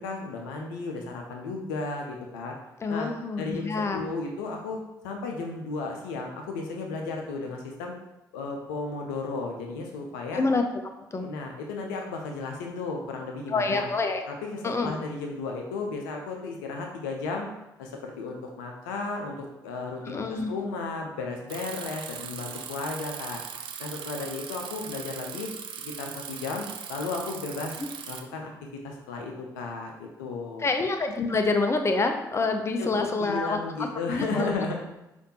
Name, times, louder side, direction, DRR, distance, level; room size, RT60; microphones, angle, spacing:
voice 1, 0.0-2.5 2.9-3.1 3.4-7.9 8.3-10.4 11.1-13.9 14.3-17.5 17.8-23.4 23.8-25.5 25.8-27.8 28.1-28.5 28.8-30.7 32.8-32.9 33.2-34.7, left 3 dB, 80° left, 2 dB, 0.5 m, -34 dB
voice 2, 2.8-4.0 10.3-10.6 11.1-11.3 13.5-14.2 14.6-14.9 20.0-20.5 30.6-34.6, left 3 dB, 25° left, 5 dB, 0.6 m, -27 dB
Bicycle, 21.5-28.2, right 7 dB, 55° right, 0.4 m, -39 dB
5.0 x 2.5 x 2.8 m, 0.96 s
hypercardioid pair, 45°, 10 cm